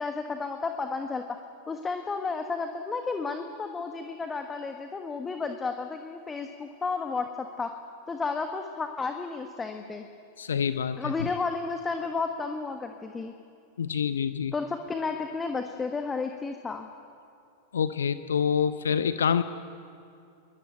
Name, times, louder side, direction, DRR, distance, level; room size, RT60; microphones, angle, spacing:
voice 1, 0.0-1.4 1.7-7.7 8.1-10.0 11.0-13.3 14.5-16.9, left 4 dB, 15° left, 5 dB, 1.5 m, -32 dB
voice 2, 10.4-11.3 13.8-14.5 17.7-19.4, left 7 dB, 65° left, 12 dB, 0.8 m, -26 dB
22.5 x 20.5 x 9.2 m, 2.5 s
figure-of-eight pair, 90°, 0 cm